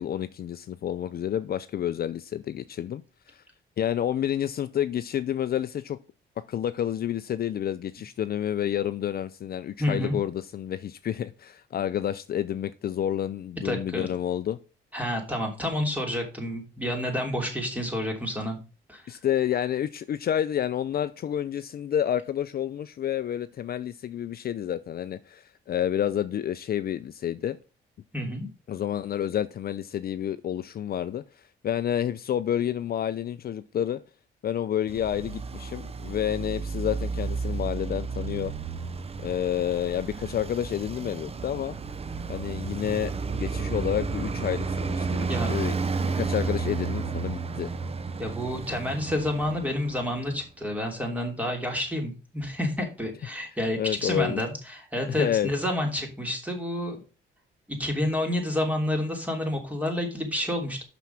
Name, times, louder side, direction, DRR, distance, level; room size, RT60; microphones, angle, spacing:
voice 1, 0.0-3.0 3.3-3.4 3.8-6.0 6.5-14.6 19.1-27.6 28.7-31.2 31.6-34.0 34.4-38.5 39.2-41.7 42.3-45.7 46.1-47.7 53.8-54.4 55.1-55.5, left 10 dB, 50° left, 0.5 m, -29 dB
voice 2, 9.8-10.2 13.6-14.1 14.9-18.6 18.9-19.2 28.1-28.5 45.3-45.5 48.2-57.0 57.7-60.8, left 1 dB, 5° right, 3.1 m, -29 dB
Traffic noise roadway noise, 34.9-50.4, right 4 dB, 30° right, 0.7 m, -32 dB
6.2 x 5.8 x 5.8 m
cardioid pair, 90°, 20 cm